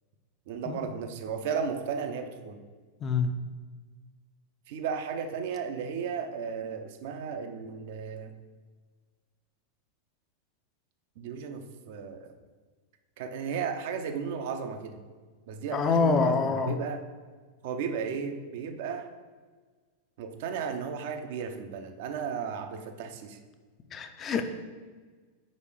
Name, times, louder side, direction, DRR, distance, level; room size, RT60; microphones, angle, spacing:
voice 1, 0.5-2.6 4.7-8.3 11.2-12.3 13.2-15.0 15.5-17.0 17.6-19.1 20.2-23.4 24.3-24.4, right 6 dB, 50° right, 7 dB, 0.6 m, -34 dB
voice 2, 3.0-3.3 15.7-16.8 23.9-24.4, left 4 dB, 25° left, 8 dB, 0.5 m, -26 dB
5.0 x 4.2 x 4.8 m, 1.4 s
figure-of-eight pair, 90°, 0 cm